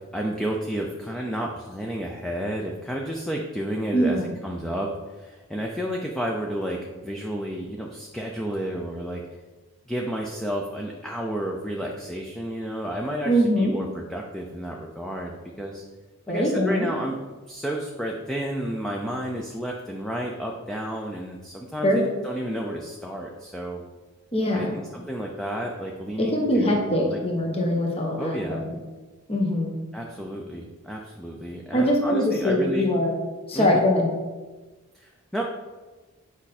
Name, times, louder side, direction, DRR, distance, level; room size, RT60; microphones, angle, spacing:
voice 1, 0.1-9.2 9.9-15.8 16.3-17.2 17.5-23.8 24.5-27.2 28.2-28.6 29.9-32.9 33.5-33.8 34.9-35.4, equal, ahead, -1 dB, 0.6 m, -31 dB
voice 2, 3.9-4.4 13.2-13.8 16.3-16.9 21.8-22.1 24.3-24.8 26.2-28.8 29.3-29.8 31.7-33.2 33.5-34.1, equal, 25° left, 0 dB, 1.1 m, -23 dB
8.5 x 5.4 x 4.2 m, 1.3 s
head